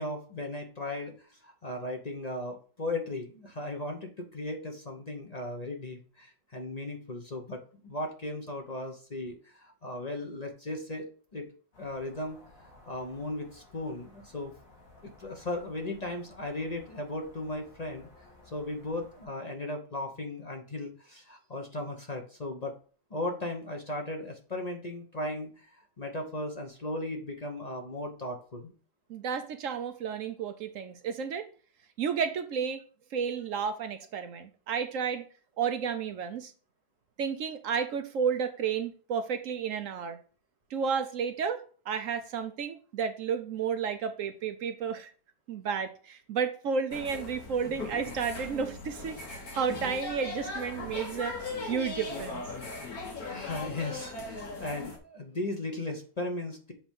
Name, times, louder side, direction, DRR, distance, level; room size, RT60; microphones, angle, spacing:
voice 1, 0.0-11.4 11.8-12.4 12.6-14.5 15.0-22.7 23.1-28.7 53.3-56.7, left 2 dB, 30° left, 3 dB, 1.0 m, -37 dB
sound 1, 11.7-19.3, left 2 dB, 65° left, 2.8 m, -57 dB
voice 2, 29.1-31.5 32.0-32.8 33.1-35.2 35.6-36.5 37.2-40.2 40.7-45.1 45.5-51.4 51.6-52.4, right 6 dB, 65° right, 8 dB, 1.0 m, -32 dB
sound 2, 46.9-55.0, left 3 dB, 85° left, 1.9 m, -39 dB
7.4 x 3.1 x 5.3 m, 0.40 s
omnidirectional pair, 1.5 m